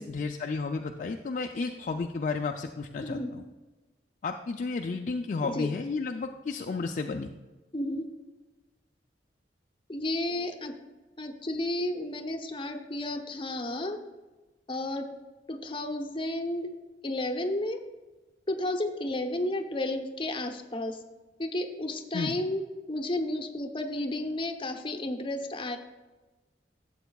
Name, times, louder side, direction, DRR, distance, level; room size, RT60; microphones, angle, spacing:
voice 1, 0.0-3.4 4.2-7.3 22.1-22.4, left 4 dB, 45° left, 4 dB, 0.4 m, -32 dB
voice 2, 7.7-8.1 9.9-10.7 11.2-14.0 14.7-15.1 15.5-16.7 17.0-17.8 18.5-21.0 21.4-22.6 22.9-25.8, left 1 dB, 30° left, 5 dB, 0.8 m, -32 dB
12.5 x 7.9 x 2.3 m, 1.2 s
head